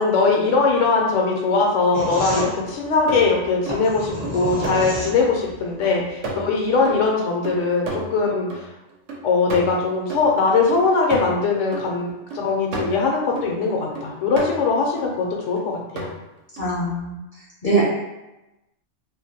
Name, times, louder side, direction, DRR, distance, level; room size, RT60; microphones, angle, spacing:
voice 1, 0.0-8.6 9.2-16.1, left 4 dB, 80° left, 0 dB, 0.9 m, -21 dB
sound 1, 1.9-5.6, equal, 30° right, 0.5 m, -29 dB
sound 2, 2.1-2.2 2.7-5.4 5.8-8.6 8.9-13.5 14.0-15.1 15.6-16.1 16.6-16.7, right 2 dB, 75° right, 0.9 m, -32 dB
voice 2, 16.6-17.2 17.6-17.8, right 2 dB, 50° left, -6 dB, 0.6 m, -21 dB
2.5 x 2.1 x 2.7 m, 0.98 s
omnidirectional pair, 1.3 m